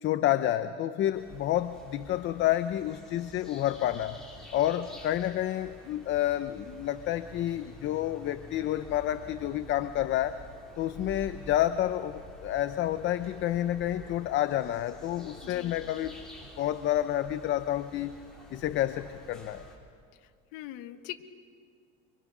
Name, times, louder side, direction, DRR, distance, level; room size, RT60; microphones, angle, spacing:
voice 1, 0.0-4.2 4.5-10.4 10.8-16.1 16.6-18.2 18.5-19.6, left 12 dB, 40° left, 10 dB, 0.6 m, -29 dB
sound 1, 1.1-19.8, equal, ahead, 4.1 m, -49 dB
voice 2, 15.4-15.7 20.2-21.2, left 14 dB, 75° left, 9 dB, 1.3 m, -42 dB
25.0 x 25.0 x 6.1 m, 2.2 s
cardioid pair, 155°, 29 cm